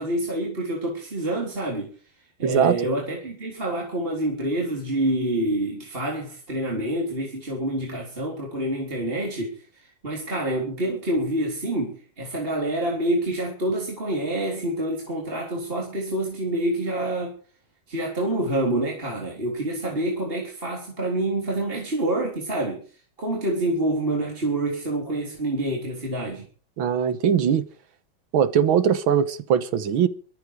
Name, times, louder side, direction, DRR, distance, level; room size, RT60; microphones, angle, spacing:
voice 1, 0.0-1.9 2.4-17.3 17.9-22.8 23.2-26.5, right 1 dB, 25° right, 3.9 m, -27 dB
voice 2, 2.4-2.8 26.8-27.7 28.3-30.1, right 8 dB, 85° right, 2.0 m, -21 dB
23.5 x 9.7 x 4.9 m
omnidirectional pair, 2.2 m